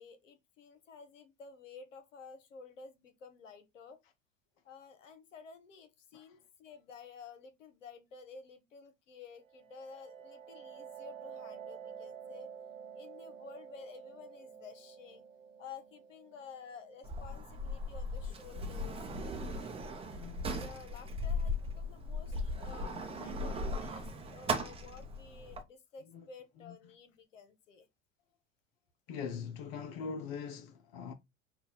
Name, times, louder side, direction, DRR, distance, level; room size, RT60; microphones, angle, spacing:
voice 1, 0.0-4.0 4.6-12.5 12.9-15.2 15.6-19.0 19.5-19.7 20.4-27.9, left 5 dB, 65° left, 1.0 m, -52 dB
sound 1, 9.4-18.9, right 7 dB, 75° right, 0.7 m, -50 dB
Sliding door, 17.0-25.6, left 1 dB, 15° right, 0.8 m, -38 dB
voice 2, 20.1-20.5 22.8-23.4 26.1-26.2 26.6-26.8 29.1-31.1, left 6 dB, 50° left, 0.7 m, -43 dB
5.5 x 2.4 x 3.8 m
figure-of-eight pair, 80°, 40 cm